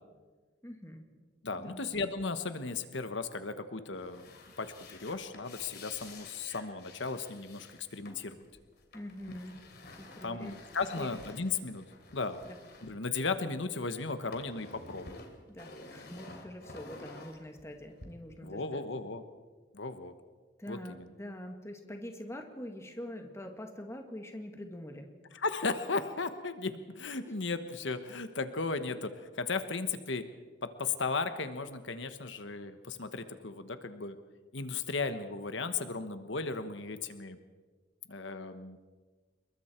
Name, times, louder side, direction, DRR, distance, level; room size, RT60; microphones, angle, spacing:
voice 1, 0.6-1.1 1.6-1.8 8.9-9.6 9.9-10.5 11.0-11.1 12.4-12.6 15.5-18.8 20.6-25.1, left 1 dB, 15° left, 4 dB, 2.0 m, -44 dB
voice 2, 1.4-8.4 10.2-11.8 12.1-12.4 12.8-15.2 18.4-19.2 19.7-20.1 20.7-21.1 25.3-30.3 30.6-34.2 34.5-37.4 38.1-38.8, left 4 dB, 75° left, 10 dB, 1.2 m, -36 dB
sound 1, 3.9-13.7 14.0-18.1, left 3 dB, 55° left, 3.1 m, -51 dB
27.5 x 22.5 x 4.5 m, 1.4 s
head